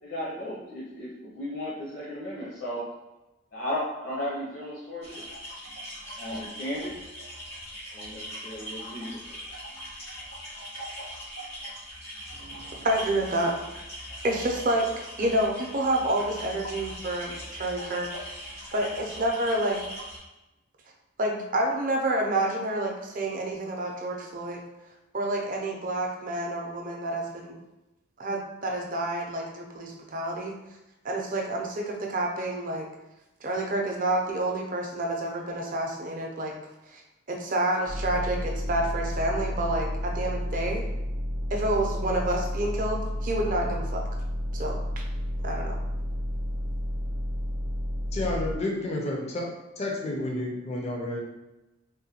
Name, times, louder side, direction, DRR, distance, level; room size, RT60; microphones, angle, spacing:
voice 1, 0.0-2.8 3.5-5.2 6.2-7.0 7.9-9.2, left 1 dB, 65° left, -6 dB, 0.8 m, -35 dB
sound 1, 5.0-20.2, equal, 85° left, 1.4 m, -41 dB
voice 2, 12.4-13.5 14.2-14.9 15.2-18.1 18.7-19.8 21.2-24.6 25.1-27.6 28.2-30.6 31.0-32.9 33.4-36.5 36.9-37.0 37.3-40.8 41.5-44.0 44.5-45.0 45.4-45.8, right 1 dB, 40° right, 1 dB, 0.5 m, -29 dB
sound 2, 37.9-48.5, equal, 85° right, 0.6 m, -31 dB
voice 3, 48.1-49.5 49.8-51.2, left 1 dB, 35° left, -1 dB, 0.4 m, -30 dB
3.7 x 2.2 x 2.8 m, 0.99 s
head